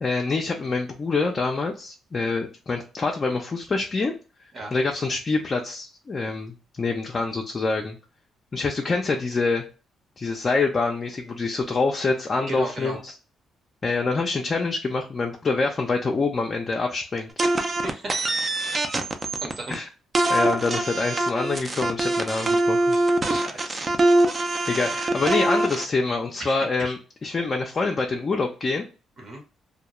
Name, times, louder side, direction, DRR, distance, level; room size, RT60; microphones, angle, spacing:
voice 1, 0.0-4.1 4.7-8.0 8.5-9.6 10.2-13.1 13.8-17.3 19.7-19.9 20.3-23.0 24.7-28.8, left 3 dB, 35° left, 1 dB, 0.4 m, -26 dB
voice 2, 12.5-13.0 17.8-18.3 19.4-19.8 23.2-23.9 26.4-26.9 29.2-29.4, right 2 dB, 45° right, 2 dB, 0.9 m, -35 dB
sound 1, 17.4-19.7 20.1-25.8, right 2 dB, 30° right, 0.4 m, -23 dB
2.2 x 2.2 x 2.8 m, 0.35 s
cardioid pair, 90°, 0 cm